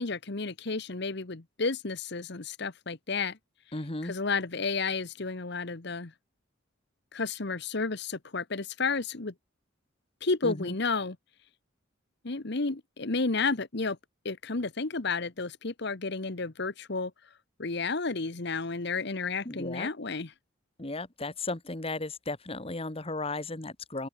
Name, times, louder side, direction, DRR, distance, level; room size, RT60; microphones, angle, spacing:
voice 1, 0.0-3.4 4.0-6.1 7.1-9.3 10.2-11.2 12.2-14.0 14.2-17.1 17.6-20.3, left 4 dB, 55° left, 1.2 m, -31 dB
voice 2, 3.7-4.1 10.4-10.7 19.4-19.9 20.8-24.1, left 2 dB, 30° left, 1.5 m, -35 dB
open air
head